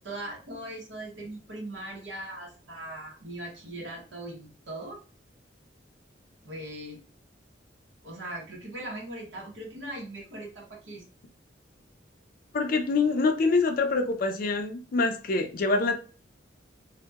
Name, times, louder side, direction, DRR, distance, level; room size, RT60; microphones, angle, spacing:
voice 1, 0.0-5.0 6.4-7.0 8.0-11.0, right 1 dB, 80° right, 0.8 m, -40 dB
voice 2, 12.5-16.0, left 3 dB, 50° left, 0.4 m, -25 dB
2.8 x 2.0 x 2.2 m
head